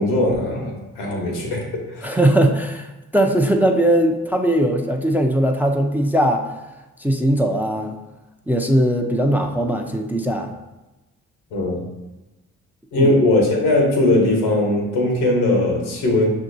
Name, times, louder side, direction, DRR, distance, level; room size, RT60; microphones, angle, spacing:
voice 1, 0.0-2.2 11.5-11.8 12.9-16.3, left 1 dB, 85° left, 0 dB, 1.0 m, -19 dB
voice 2, 2.0-6.5 7.0-7.9 8.5-10.5 13.0-13.1, right 1 dB, 5° right, 3 dB, 0.4 m, -19 dB
5.8 x 2.7 x 2.6 m, 1.0 s
hypercardioid pair, 45°, 38 cm